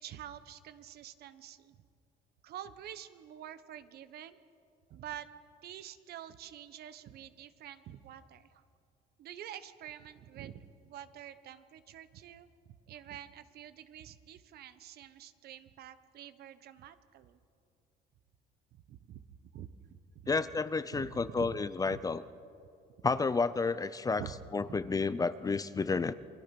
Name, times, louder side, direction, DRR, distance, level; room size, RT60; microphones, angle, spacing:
voice 1, 0.0-1.8 2.4-4.4 4.9-5.3 5.6-8.6 9.2-12.5 12.9-17.4 18.7-19.2 19.5-20.5 20.9-21.6 21.9-22.0 24.2-24.3, right 10 dB, 70° right, 12 dB, 1.1 m, -47 dB
voice 2, 20.3-22.2 23.0-24.2 24.5-26.1, left 4 dB, 20° left, 15 dB, 0.6 m, -31 dB
28.0 x 21.0 x 6.0 m, 2.5 s
cardioid pair, 110°, 17 cm